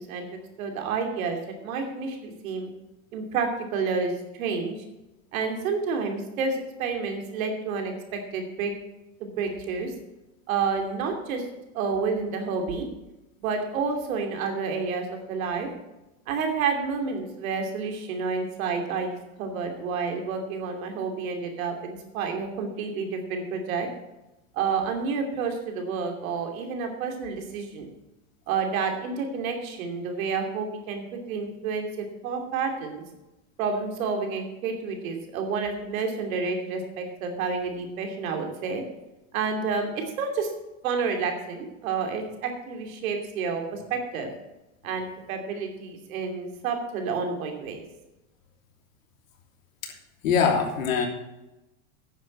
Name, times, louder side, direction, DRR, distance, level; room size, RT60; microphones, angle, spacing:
voice 1, 0.0-1.4 1.6-2.7 3.1-4.7 5.3-8.7 9.2-9.9 10.5-11.4 11.7-12.8 13.4-15.7 16.3-19.1 19.4-23.9 24.5-27.9 28.5-33.0 33.6-38.8 39.3-39.9 40.2-40.5 40.8-44.3 44.8-47.8, right 5 dB, 80° right, 4 dB, 2.8 m, -29 dB
voice 2, 50.2-51.1, left 6 dB, 80° left, 1 dB, 3.1 m, -23 dB
9.8 x 7.1 x 7.5 m, 0.97 s
supercardioid pair, 125°, 41 cm